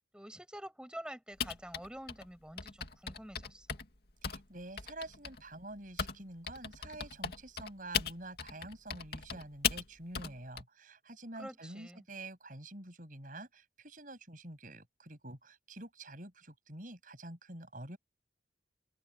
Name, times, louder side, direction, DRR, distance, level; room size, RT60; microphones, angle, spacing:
voice 1, 0.0-3.7 11.4-12.1, equal, 5° right, 7.2 m, -47 dB
Typing, 1.4-6.2 6.5-10.6, left 7 dB, 60° left, 2.5 m, -37 dB
voice 2, 4.2-18.0, right 2 dB, 45° right, 7.8 m, -48 dB
open air
head